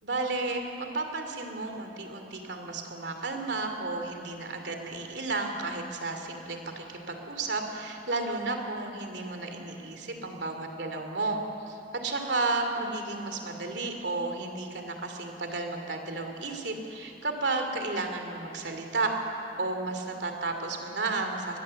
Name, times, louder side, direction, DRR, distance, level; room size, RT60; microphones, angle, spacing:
voice 1, 0.0-11.4 11.7-19.1 19.6-21.6, right 3 dB, 80° right, 5 dB, 2.7 m, -32 dB
22.5 x 19.5 x 7.7 m, 2.8 s
head